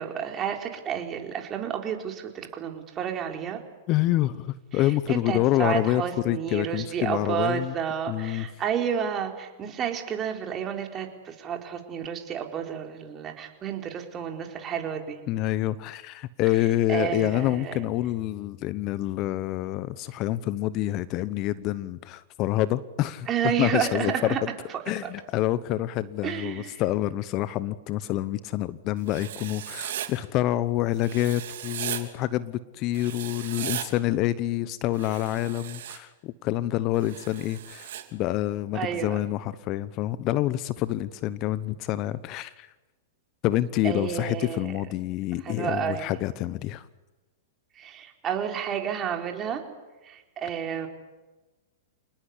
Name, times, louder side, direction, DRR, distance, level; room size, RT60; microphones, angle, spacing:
voice 1, 0.0-3.6 4.7-15.2 16.9-17.8 23.3-24.4 24.7-25.1 26.2-26.8 38.7-39.1 43.8-44.8 45.4-46.1 47.8-49.6 50.0-50.9, right 8 dB, 30° right, 3 dB, 4.2 m, -31 dB
voice 2, 3.9-7.7 8.1-8.5 15.3-24.4 24.9-42.7 43.4-46.9, left 14 dB, 40° left, 16 dB, 0.9 m, -27 dB
Writing, 29.1-30.1 31.0-32.0 32.9-33.9 34.9-36.0 37.0-38.0, right 11 dB, 65° right, 3.0 m, -36 dB
27.5 x 19.5 x 8.4 m, 1.2 s
hypercardioid pair, 115°, 0 cm